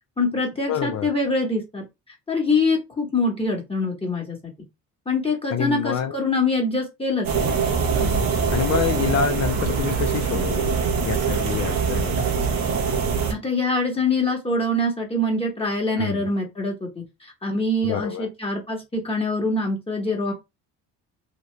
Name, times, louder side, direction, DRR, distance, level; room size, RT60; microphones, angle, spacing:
voice 1, 0.2-1.8 2.3-4.5 5.1-7.6 13.3-20.3, left 2 dB, 15° left, 1.0 m, -24 dB
voice 2, 0.7-1.1 5.5-6.2 8.0-10.7 11.0-12.3 16.0-16.3 17.8-18.3, left 9 dB, 50° left, 0.5 m, -27 dB
sound 1, 7.2-13.3, right 5 dB, 70° right, 1.0 m, -23 dB
2.9 x 2.5 x 3.2 m
cardioid pair, 85°, 35 cm